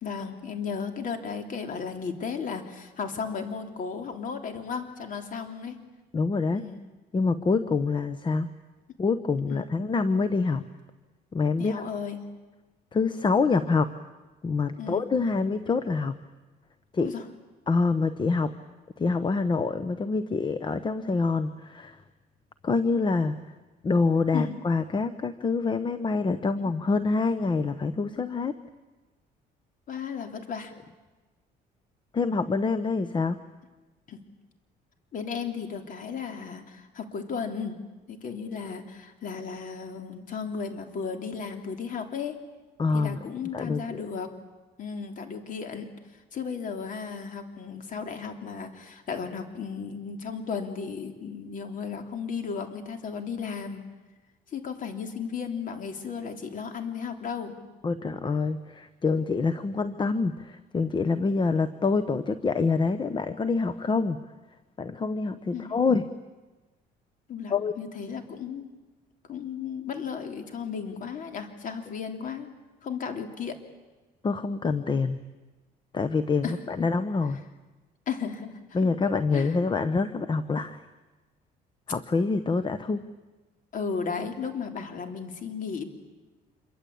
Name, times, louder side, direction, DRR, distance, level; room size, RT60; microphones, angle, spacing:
voice 1, 0.0-5.8 6.5-6.8 9.5-9.6 11.6-12.2 14.8-15.0 17.0-17.2 24.3-24.6 26.6-26.7 29.9-30.7 34.1-34.2 35.1-37.8 38.1-42.4 42.9-44.4 44.8-45.9 46.3-53.8 54.5-57.6 65.5-65.7 67.3-68.7 69.3-72.5 72.8-73.6 76.4-76.6 78.1-78.6 79.0-79.6 83.7-85.8, left 6 dB, 50° left, 6 dB, 3.4 m, -35 dB
voice 2, 6.1-6.7 7.1-8.5 9.0-10.7 11.3-11.8 12.9-13.9 14.4-16.2 16.9-17.1 17.7-18.5 19.0-22.0 22.6-23.4 23.8-28.6 32.1-33.4 42.8-43.2 43.5-44.0 57.8-64.2 64.8-66.1 67.5-67.7 74.2-75.2 75.9-77.4 78.7-80.8 81.9-83.0, left 4 dB, 30° left, 12 dB, 1.1 m, -26 dB
27.0 x 23.5 x 8.7 m, 1.2 s
cardioid pair, 110°, 17 cm